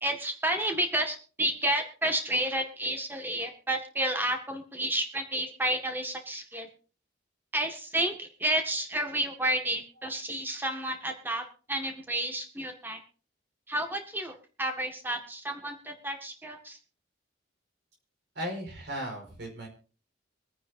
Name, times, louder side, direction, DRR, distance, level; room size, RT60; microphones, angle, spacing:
voice 1, 0.0-6.7 7.5-13.0 13.7-16.8, right 1 dB, 10° right, 4 dB, 1.8 m, -31 dB
voice 2, 18.3-19.7, equal, 65° right, 2 dB, 5.0 m, -36 dB
25.0 x 9.6 x 2.7 m, 0.38 s
head